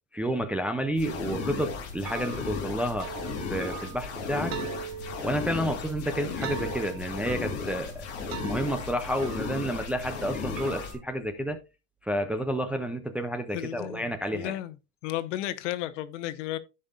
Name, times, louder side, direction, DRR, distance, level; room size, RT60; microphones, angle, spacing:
voice 1, 0.1-3.1 3.5-4.6 5.2-11.6 12.0-14.6, equal, 5° right, 0.3 m, -30 dB
sound 1, 0.9-10.9, left 5 dB, 40° left, 3.4 m, -35 dB
sound 2, 2.0-11.0, right 10 dB, 50° right, 2.1 m, -42 dB
voice 2, 13.5-14.1 14.3-14.8 15.0-16.6, left 14 dB, 75° left, 1.1 m, -33 dB
14.5 x 5.4 x 2.4 m
supercardioid pair, 155°, 37 cm